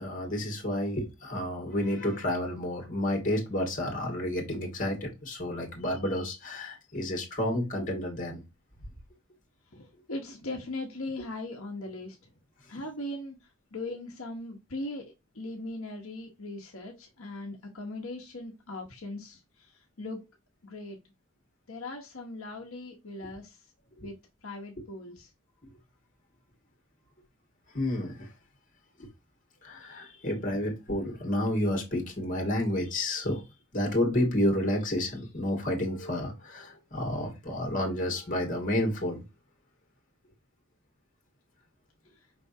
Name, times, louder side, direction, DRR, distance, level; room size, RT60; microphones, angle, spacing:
voice 1, 0.0-8.4 27.7-28.3 29.0-29.1 29.6-33.4 33.7-39.2, left 1 dB, 40° left, 1.9 m, -30 dB
voice 2, 9.7-12.3 12.7-13.4 13.7-20.2 20.6-21.0 21.7-23.6 24.0-24.1 24.4-25.3, left 2 dB, 75° left, 1.1 m, -39 dB
5.3 x 3.5 x 2.7 m
head